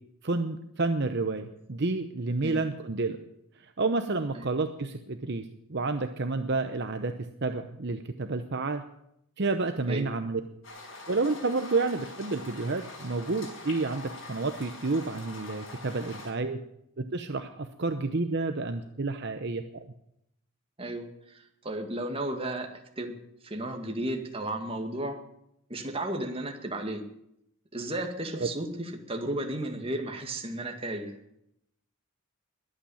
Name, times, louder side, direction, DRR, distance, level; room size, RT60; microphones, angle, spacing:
voice 1, 0.2-3.2 3.6-7.1 7.4-8.8 9.4-10.4 11.1-16.6 17.0-19.8 28.4-28.5, right 3 dB, 50° right, 8 dB, 0.8 m, -30 dB
sound 1, 10.6-16.3, left 3 dB, 60° left, 5.5 m, -44 dB
voice 2, 20.8-23.1 23.4-25.2 25.7-27.0 27.7-31.1, right 1 dB, 25° right, 4 dB, 2.0 m, -34 dB
21.5 x 9.0 x 7.2 m, 0.78 s
head